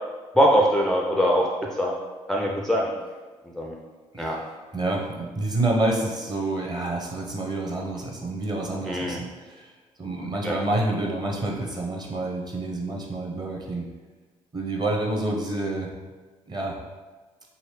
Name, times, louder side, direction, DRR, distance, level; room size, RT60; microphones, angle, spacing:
voice 1, 0.4-1.5 1.8-2.0 2.3-2.9 3.5-3.8 4.2-4.4 8.9-9.2 10.4-10.6, equal, 5° left, -1 dB, 0.4 m, -22 dB
voice 2, 4.7-9.2 9.4-9.7 10.0-13.9 14.5-15.9 16.5-16.8, right 2 dB, 25° right, -1 dB, 0.8 m, -28 dB
3.0 x 2.7 x 3.1 m, 1.3 s
hypercardioid pair, 50°, 16 cm